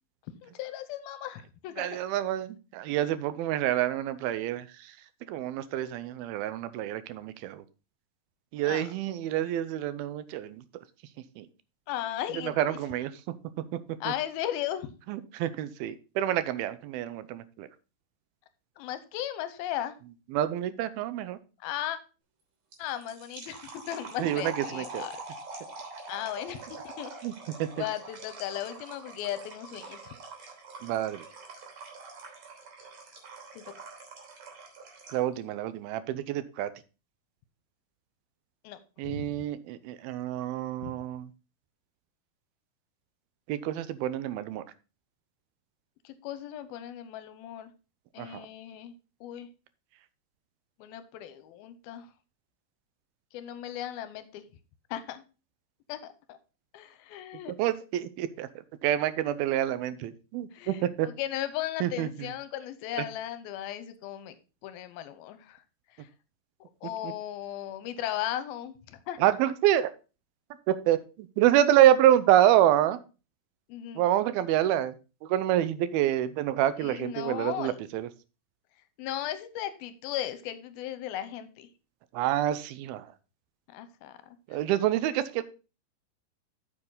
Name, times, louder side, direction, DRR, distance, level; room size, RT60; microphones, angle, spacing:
voice 1, 0.4-2.0 8.6-8.9 11.9-12.8 14.0-14.9 18.8-20.0 21.6-22.0 22.8-25.1 26.1-27.1 27.8-30.1 33.5-33.7 38.6-39.3 40.8-40.9 46.0-47.7 48.1-49.5 50.8-52.1 53.3-54.5 54.9-55.2 55.9-56.4 56.7-57.5 60.5-64.3 64.6-65.6 66.0-66.1 66.8-69.2 73.7-74.0 76.8-77.8 79.0-81.7 83.7-84.2, left 12 dB, 85° left, 12 dB, 2.6 m, -36 dB
voice 2, 1.8-5.0 5.3-7.6 8.5-10.6 11.4-11.5 12.3-13.1 14.1-14.2 15.1-17.7 20.3-21.4 24.2-25.1 27.2-27.3 27.6-27.7 30.8-31.2 35.1-36.7 39.0-41.3 43.5-44.6 48.2-48.5 57.5-58.5 58.8-61.1 61.8-62.3 67.0-67.1 69.2-69.9 70.7-73.0 74.0-75.0 75.2-78.1 82.1-83.1 84.5-85.4, right 12 dB, 90° right, 14 dB, 2.5 m, -27 dB
sound 1, 22.7-35.3, right 3 dB, 50° right, 4.3 m, -45 dB
8.6 x 7.1 x 3.9 m, 0.32 s
omnidirectional pair, 4.4 m